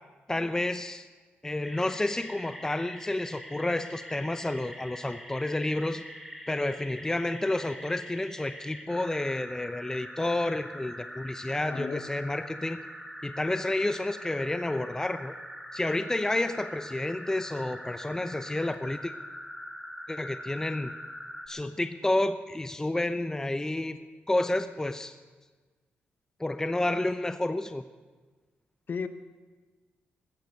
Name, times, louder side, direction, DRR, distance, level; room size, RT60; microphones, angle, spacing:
voice 1, 0.3-1.1 1.4-6.0 6.5-12.8 13.2-15.4 15.7-19.1 20.1-20.9 21.5-24.0 24.3-25.2 26.4-27.8, left 2 dB, 15° left, 0.7 m, -30 dB
sound 1, 1.6-21.5, equal, ahead, 2.8 m, -43 dB
voice 2, 11.6-12.0 28.9-29.1, left 5 dB, 50° left, 1.2 m, -33 dB
16.0 x 13.5 x 6.6 m
cardioid pair, 75°, 4 cm